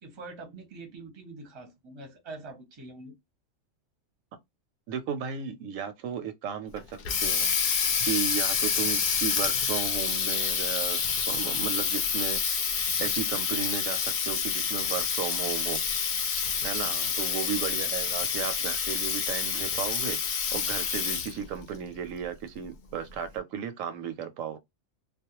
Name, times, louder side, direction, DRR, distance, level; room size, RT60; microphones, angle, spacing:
voice 1, 0.0-3.1 16.8-17.1, right 3 dB, 30° right, 0.6 m, -44 dB
voice 2, 4.9-6.8 7.2-7.5 8.0-11.0 11.3-12.4 13.0-15.8 16.2-16.4 16.6-24.6, right 7 dB, 80° right, 0.9 m, -34 dB
Water tap faucet, 6.8-21.5, left 6 dB, 60° left, 0.6 m, -28 dB
2.3 x 2.0 x 2.9 m
omnidirectional pair, 1.3 m